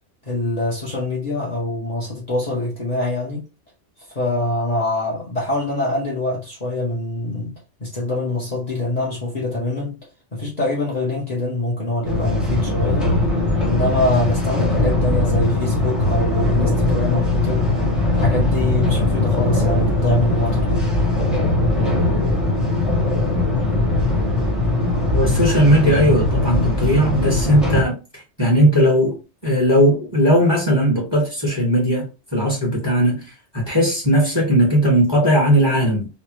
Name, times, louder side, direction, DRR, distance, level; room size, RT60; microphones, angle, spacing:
voice 1, 0.2-3.4 4.1-7.5 7.8-10.0 10.3-13.1 13.7-17.7 18.1-20.9, left 2 dB, 35° left, 0.9 m, -24 dB
sound 1, 12.0-27.8, left 2 dB, ahead, 0.6 m, -20 dB
voice 2, 25.1-28.0 28.4-29.1 29.4-33.2 33.5-36.1, equal, 20° left, 1.3 m, -17 dB
3.2 x 2.0 x 3.0 m
omnidirectional pair, 1.2 m